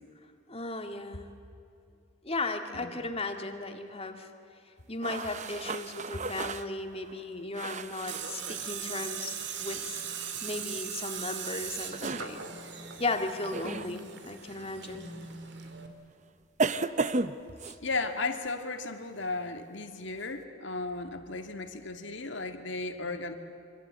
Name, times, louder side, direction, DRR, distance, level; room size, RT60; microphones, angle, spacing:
voice 1, 0.5-1.3 2.2-4.3 4.9-10.0 10.4-12.5 13.0-15.1 17.6-17.8, left 2 dB, 30° left, 6 dB, 2.0 m, -36 dB
sound 1, 5.0-8.3 10.7-10.9 11.8-12.3 13.5-13.9 14.8-15.0 16.6-17.8, right 3 dB, 35° right, 0.8 m, -33 dB
Tools, 8.1-15.9, right 7 dB, 55° right, 2.4 m, -39 dB
voice 2, 17.8-23.4, left 3 dB, 60° left, 6 dB, 2.1 m, -35 dB
26.0 x 25.0 x 8.2 m, 2.7 s
head